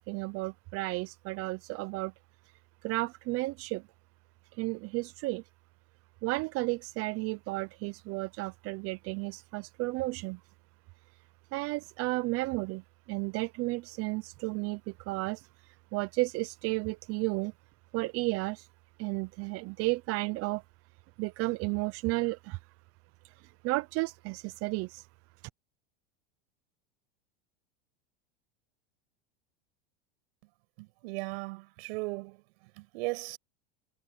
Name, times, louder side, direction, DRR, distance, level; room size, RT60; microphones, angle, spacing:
voice 1, 0.0-2.1 2.8-3.8 4.5-5.4 6.2-10.4 11.5-12.8 13.1-17.5 17.9-18.7 19.0-20.6 21.2-22.6 23.2-25.1, right 23 dB, 45° right, 0.7 m, -33 dB
voice 2, 30.8-32.4 32.8-33.4, right 27 dB, 65° right, 6.8 m, -37 dB
supercardioid pair, 120°, 33 cm